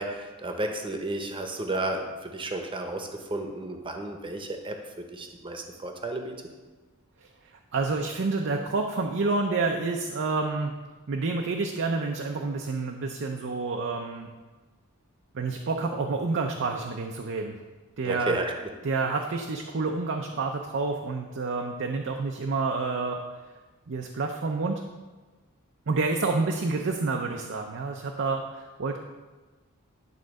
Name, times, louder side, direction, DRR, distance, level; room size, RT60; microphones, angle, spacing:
voice 1, 0.0-6.4 18.0-18.5, right 2 dB, 25° right, 4 dB, 0.9 m, -33 dB
voice 2, 7.7-10.7 11.1-14.3 15.3-17.6 18.0-18.4 18.8-23.2 23.9-24.8 25.9-29.0, right 3 dB, 55° right, 3 dB, 0.6 m, -28 dB
11.0 x 3.9 x 6.3 m, 1.3 s
head